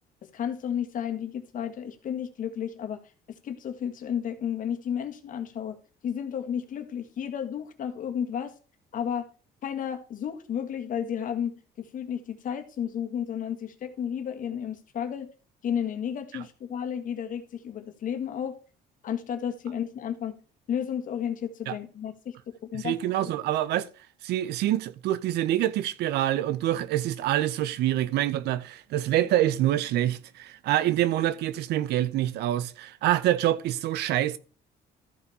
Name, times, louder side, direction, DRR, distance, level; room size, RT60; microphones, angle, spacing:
voice 1, 0.3-3.0 3.4-5.8 6.0-8.5 8.9-9.2 9.6-15.3 15.6-18.6 19.0-20.4 20.7-22.3 22.7-23.0, left 8 dB, 50° left, 1.6 m, -32 dB
voice 2, 22.7-23.9 24.2-34.4, right 13 dB, 80° right, 0.7 m, -26 dB
13.5 x 5.3 x 4.1 m
cardioid pair, 110°, 17 cm